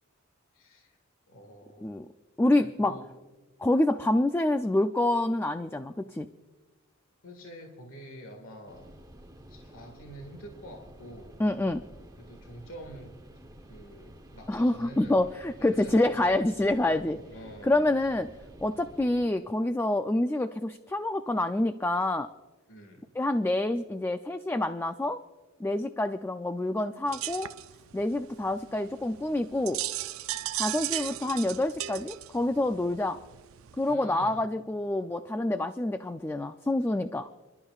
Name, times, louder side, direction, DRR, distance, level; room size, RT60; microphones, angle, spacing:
voice 1, 0.5-1.0 1.3-2.1 2.6-3.0 7.2-9.0 9.5-11.4 12.2-13.1 13.7-15.2 15.6-16.3 17.1-17.8 22.7-23.0 33.9-34.4, equal, 75° left, 3 dB, 1.9 m, -47 dB
voice 2, 2.4-3.0 3.6-6.3 11.4-11.8 14.5-17.2 17.6-18.3 18.6-22.3 23.2-25.2 25.6-27.5 27.9-29.8 30.5-33.2 33.8-37.3, left 1 dB, 10° left, 9 dB, 0.3 m, -27 dB
sound 1, 8.7-19.3, right 1 dB, 20° right, 0.9 m, -51 dB
sound 2, 27.1-33.9, right 14 dB, 75° right, 0.4 m, -37 dB
30.0 x 12.0 x 2.4 m, 1.3 s
head